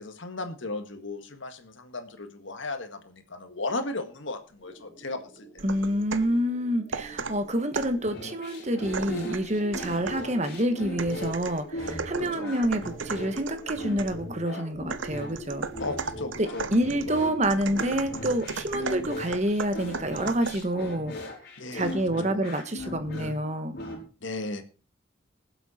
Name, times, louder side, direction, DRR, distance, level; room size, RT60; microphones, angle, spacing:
voice 1, 0.0-5.6 9.8-10.1 12.2-12.5 15.8-16.7 17.1-17.2 21.6-21.9 22.3-22.5 24.2-24.7, left 2 dB, 70° left, 8 dB, 1.8 m, -36 dB
sound 1, 4.6-17.3, right 1 dB, 5° right, 7.3 m, -46 dB
voice 2, 5.6-15.7 16.4-21.1 21.7-23.8, right 1 dB, 35° right, 9 dB, 1.4 m, -28 dB
sound 2, 5.6-6.4 6.9-8.1 8.9-10.3 11.0-14.2 14.9-20.7, right 5 dB, 70° right, 0.9 m, -36 dB
sound 3, 8.0-24.0, left 1 dB, 50° left, 4.3 m, -38 dB
19.5 x 8.0 x 4.3 m, 0.36 s
head